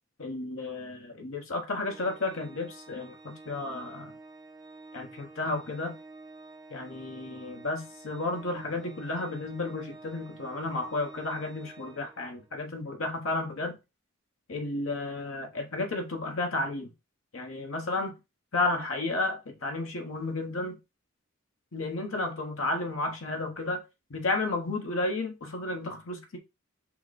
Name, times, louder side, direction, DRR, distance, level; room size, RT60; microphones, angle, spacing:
voice 1, 0.2-4.1 4.9-5.9 6.7-13.8 14.5-16.9 17.3-18.1 18.5-20.8 21.7-23.8 24.1-26.4, left 2 dB, 75° left, 1.2 m, -32 dB
Organ, 1.8-12.6, right 3 dB, 20° right, 0.7 m, -49 dB
5.8 x 2.2 x 4.1 m
head